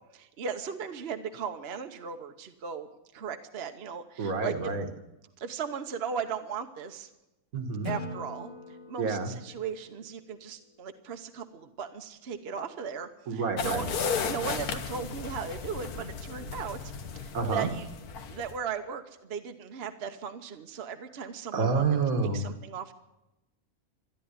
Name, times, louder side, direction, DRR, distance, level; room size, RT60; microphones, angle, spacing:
voice 1, 0.1-2.9 3.1-4.5 5.4-7.1 7.8-8.5 8.9-13.9 14.3-16.9 17.2-17.9 18.3-22.0 22.3-22.9, right 6 dB, 50° right, 7 dB, 1.1 m, -37 dB
voice 2, 4.2-4.9 7.5-7.9 9.0-9.3 13.3-13.9 17.3-17.7 21.5-22.5, right 4 dB, 70° right, 5 dB, 1.9 m, -28 dB
Acoustic guitar / Strum, 7.8-11.0, left 3 dB, 60° left, 1.7 m, -43 dB
sound 1, 13.6-18.6, left 5 dB, 85° left, 1.6 m, -35 dB
13.5 x 11.0 x 9.8 m, 0.94 s
omnidirectional pair, 1.6 m